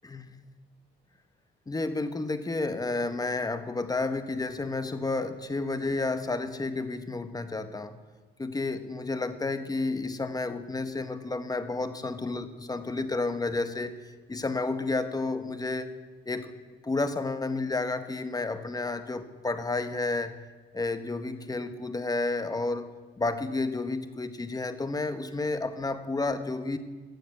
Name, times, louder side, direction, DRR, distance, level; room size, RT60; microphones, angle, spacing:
voice 1, 0.0-0.4 1.7-8.0 8.4-13.9 14.3-15.9 16.3-20.4 20.7-22.9 23.2-26.8, left 3 dB, 20° left, 9 dB, 1.1 m, -31 dB
14.0 x 7.2 x 8.2 m, 1.4 s
cardioid pair, 90°, 20 cm